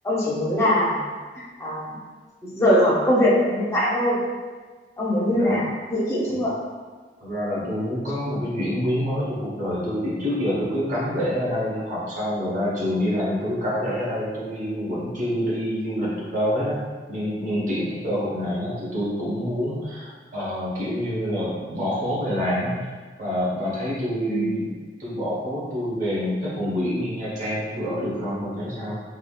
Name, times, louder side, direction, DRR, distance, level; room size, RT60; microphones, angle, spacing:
voice 1, 0.0-1.0 1.4-1.9 2.4-4.2 5.0-6.5 24.3-24.5, left 1 dB, 15° left, -7 dB, 0.7 m, -22 dB
voice 2, 7.2-16.8 17.1-22.9 23.2-24.7 25.0-29.0, equal, 45° right, -7 dB, 1.0 m, -27 dB
3.4 x 2.3 x 2.3 m, 1.4 s
head